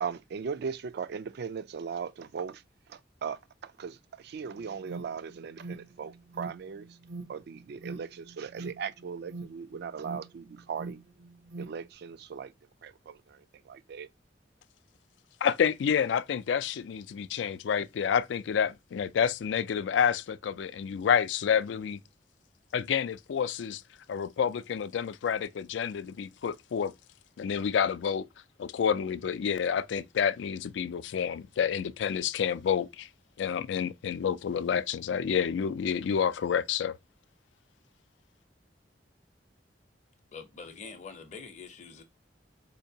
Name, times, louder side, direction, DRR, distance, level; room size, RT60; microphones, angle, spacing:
voice 1, 0.0-7.0 7.3-11.0 11.6-12.5 12.8-14.1, right 6 dB, 65° right, 0.3 m, -38 dB
Alarm, 4.4-11.8, right 3 dB, 85° right, 0.8 m, -44 dB
voice 2, 15.4-22.0 22.7-23.8 24.1-26.9 27.4-28.3 28.6-33.1 33.4-37.0, left 7 dB, 80° left, 0.3 m, -29 dB
voice 3, 40.3-42.0, left 5 dB, 40° left, 0.6 m, -45 dB
4.3 x 2.8 x 2.7 m
head